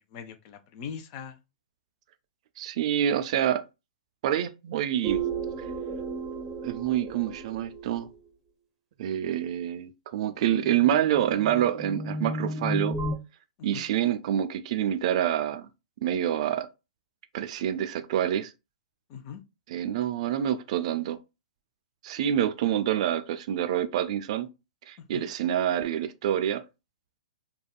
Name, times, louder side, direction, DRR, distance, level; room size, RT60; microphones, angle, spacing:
voice 1, 0.1-1.4 13.6-13.8 19.1-19.4 25.1-25.3, left 7 dB, 40° left, 0.5 m, -41 dB
voice 2, 2.6-3.6 4.2-5.2 6.6-8.1 9.0-13.0 13.6-15.7 16.0-16.7 17.3-18.5 19.7-21.2 22.0-24.5 24.9-26.6, right 10 dB, 50° right, 0.4 m, -27 dB
sound 1, 5.0-8.1 10.5-13.2, right 3 dB, 10° right, 0.7 m, -33 dB
3.5 x 2.1 x 2.2 m
hypercardioid pair, 135°, 4 cm